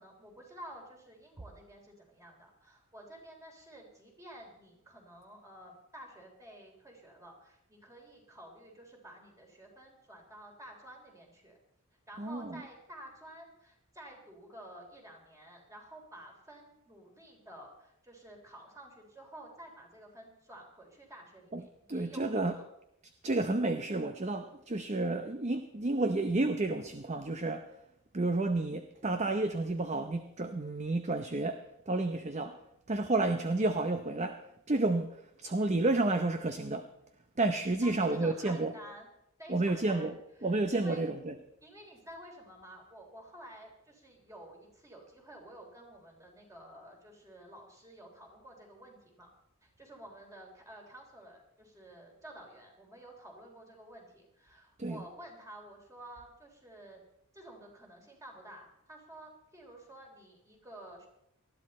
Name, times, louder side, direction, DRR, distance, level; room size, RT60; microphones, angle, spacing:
voice 1, 0.0-11.6 12.1-22.7 24.9-25.1 37.8-39.1 39.4-40.1 40.4-41.0 41.6-49.3 49.6-57.0 57.3-61.1, right 1 dB, 15° right, 3.6 m, -51 dB
voice 2, 12.2-12.6 21.5-21.6 21.9-22.5 23.2-27.7 28.1-32.6 32.9-36.9 37.4-38.7 39.5-40.1 40.4-41.3 54.8-55.0, right 2 dB, 30° right, 0.7 m, -31 dB
19.5 x 13.5 x 4.3 m
head